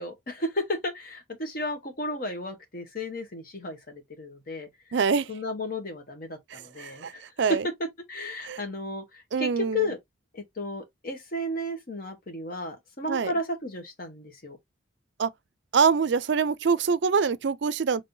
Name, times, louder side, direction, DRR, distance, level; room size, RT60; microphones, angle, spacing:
voice 1, 0.0-4.7 5.3-7.2 8.1-10.0 10.3-14.6, left 2 dB, 45° left, 1.0 m, -34 dB
voice 2, 4.9-5.3 6.5-7.1 7.4-7.7 8.4-8.6 9.3-9.9 13.1-13.3 15.2-15.3 15.7-18.0, right 5 dB, 60° right, 0.4 m, -25 dB
5.4 x 3.3 x 2.6 m
head